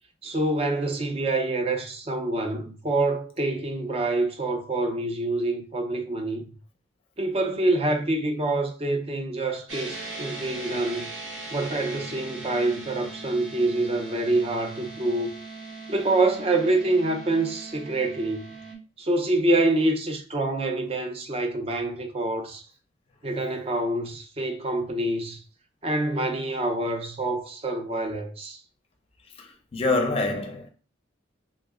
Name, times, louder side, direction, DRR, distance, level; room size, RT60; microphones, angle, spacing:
voice 1, 0.2-6.5 7.2-11.1 11.5-15.3 15.9-18.5 19.0-22.7 23.2-25.4 25.8-28.6, right 2 dB, 30° right, 0.5 m, -26 dB
sound 1, 9.7-18.7, right 3 dB, 90° right, 1.0 m, -39 dB
voice 2, 29.4-30.7, left 2 dB, 30° left, 0.5 m, -26 dB
3.4 x 2.0 x 3.5 m
head